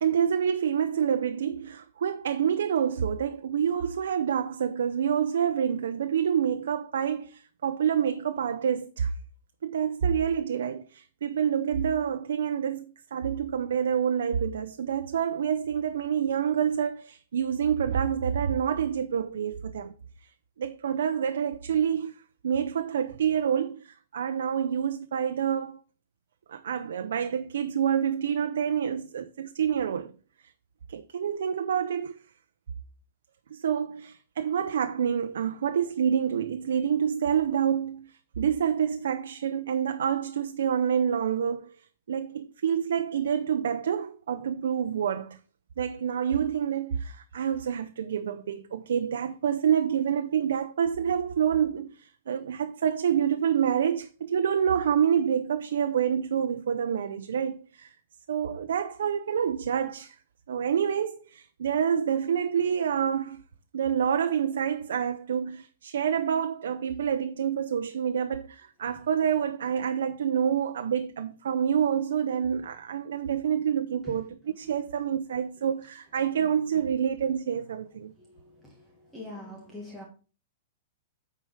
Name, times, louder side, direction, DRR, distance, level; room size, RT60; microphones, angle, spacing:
voice 1, 0.0-9.1 9.6-19.9 20.6-22.1 22.4-25.8 26.5-30.1 30.9-32.1 33.5-41.7 42.1-45.4 45.8-57.9 58.3-60.2 60.5-63.4 63.7-78.2, right 8 dB, 85° right, 0.6 m, -27 dB
voice 2, 78.3-78.7 79.1-80.0, left 1 dB, 5° left, 1.5 m, -42 dB
9.1 x 4.7 x 4.5 m
supercardioid pair, 165°, 0 cm